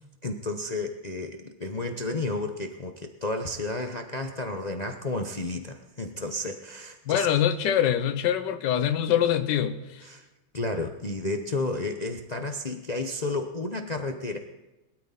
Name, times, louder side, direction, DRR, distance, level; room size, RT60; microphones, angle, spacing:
voice 1, 0.2-7.3 10.0-10.3 10.5-14.4, left 2 dB, 80° left, 4 dB, 0.3 m, -32 dB
voice 2, 7.1-9.8, left 10 dB, 60° left, 9 dB, 1.5 m, -24 dB
21.5 x 13.0 x 4.2 m, 1.0 s
omnidirectional pair, 2.3 m